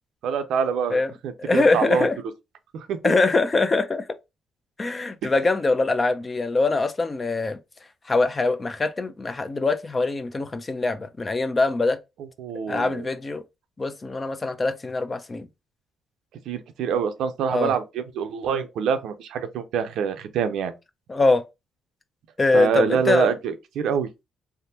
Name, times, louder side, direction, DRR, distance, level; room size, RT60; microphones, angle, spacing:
voice 1, 0.2-2.1 2.7-3.2 12.4-13.1 16.5-20.7 22.5-24.1, right 7 dB, 80° right, 0.5 m, -25 dB
voice 2, 1.4-2.2 3.0-4.0 4.8-7.6 8.1-12.0 12.7-13.4 13.8-15.5 17.5-17.7 21.1-21.4 22.4-23.3, left 3 dB, 30° left, 0.4 m, -23 dB
3.4 x 2.0 x 2.8 m
cardioid pair, 90°, 0 cm